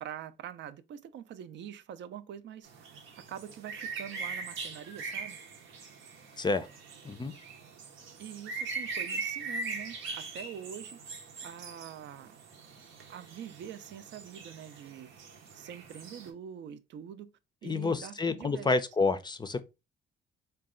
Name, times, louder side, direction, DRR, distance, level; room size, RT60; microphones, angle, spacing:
voice 1, 0.0-5.4 8.2-11.0 11.4-12.4 13.1-15.2 15.5-17.3 17.6-18.7, right 9 dB, 65° right, 0.5 m, -45 dB
sound 1, 2.6-16.3, right 4 dB, 85° right, 0.8 m, -41 dB
voice 2, 6.4-6.7 7.0-7.3 17.6-19.6, left 3 dB, 20° left, 0.4 m, -29 dB
3.9 x 2.3 x 3.6 m
cardioid pair, 90°, 20 cm